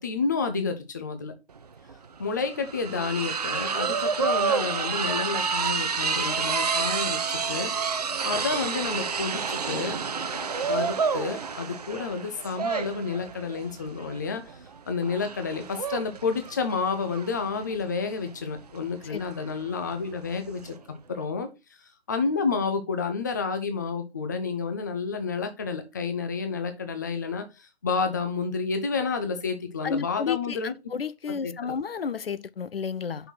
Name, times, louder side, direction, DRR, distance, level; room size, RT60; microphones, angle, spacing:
voice 1, 0.0-1.3 2.2-7.7 8.2-10.0 10.3-14.4 14.9-20.8 21.1-21.5 22.1-30.7 31.4-31.7, left 5 dB, 20° left, 0.6 m, -30 dB
sound 1, 1.6-1.7 1.9-20.8, right 5 dB, 40° right, 0.6 m, -29 dB
voice 2, 29.8-33.3, left 6 dB, 65° left, 0.5 m, -32 dB
5.6 x 4.5 x 5.6 m
figure-of-eight pair, 150°, 31 cm